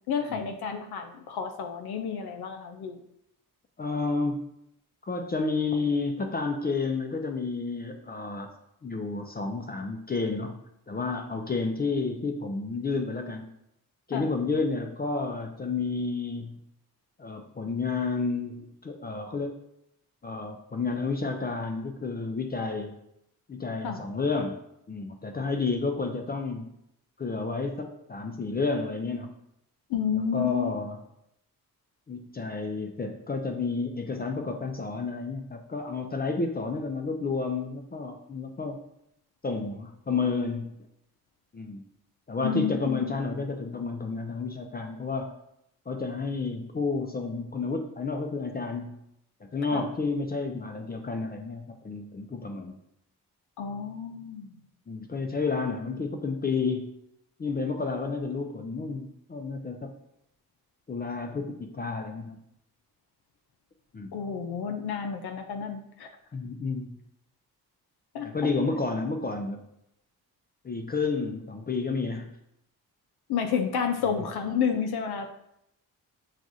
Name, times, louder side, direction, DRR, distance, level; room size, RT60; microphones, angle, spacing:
voice 1, 0.1-3.0 14.1-14.3 23.8-24.0 29.9-30.7 42.4-43.0 49.7-49.8 53.6-54.6 64.1-66.1 68.1-68.5 73.3-75.4, left 7 dB, 75° left, 5 dB, 0.5 m, -30 dB
voice 2, 3.8-4.5 5.0-8.5 8.8-13.5 14.1-16.6 17.2-19.6 20.2-22.9 23.5-24.6 24.9-26.7 27.2-29.3 30.1-31.0 32.1-38.8 39.4-40.8 41.5-41.8 42.3-45.3 45.9-49.0 49.5-52.7 54.9-57.0 57.4-59.9 60.9-62.4 63.9-64.1 66.3-67.0 68.2-69.6 70.6-72.4, left 4 dB, 25° left, 3 dB, 0.4 m, -31 dB
5.9 x 2.4 x 2.6 m, 0.77 s
cardioid pair, 55°, 39 cm